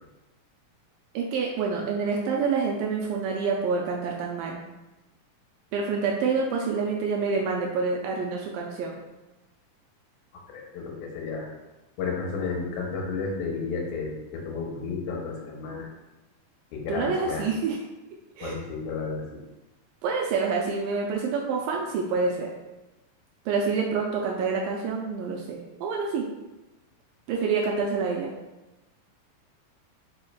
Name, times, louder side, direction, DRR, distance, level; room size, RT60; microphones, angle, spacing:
voice 1, 1.1-4.6 5.7-9.0 16.9-17.8 18.4-18.6 20.0-22.5 23.5-26.2 27.3-28.3, right 4 dB, 80° right, -1 dB, 2.2 m, -27 dB
voice 2, 10.5-11.5 12.0-15.9 16.7-17.5 18.4-19.4, left 4 dB, 70° left, -1 dB, 2.0 m, -32 dB
5.1 x 4.4 x 2.3 m, 1.0 s
omnidirectional pair, 4.0 m